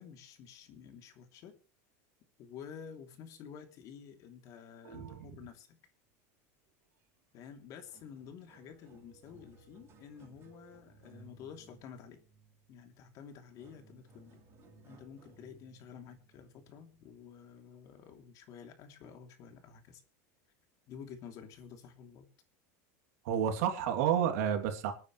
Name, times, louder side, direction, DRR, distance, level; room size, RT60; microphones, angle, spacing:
voice 1, 0.0-1.6 2.4-5.8 7.3-12.2 12.7-14.4 14.8-20.0 20.9-22.3, left 7 dB, 45° left, 5 dB, 3.0 m, -50 dB
voice 2, 4.8-5.4 23.2-24.9, right 9 dB, 75° right, 5 dB, 2.9 m, -31 dB
sound 1, 7.3-7.5 7.7-17.4 18.1-18.2 19.0-19.1, right 3 dB, 30° right, 5.4 m, -61 dB
26.5 x 9.4 x 3.2 m, 0.34 s
supercardioid pair, 145°, 8 cm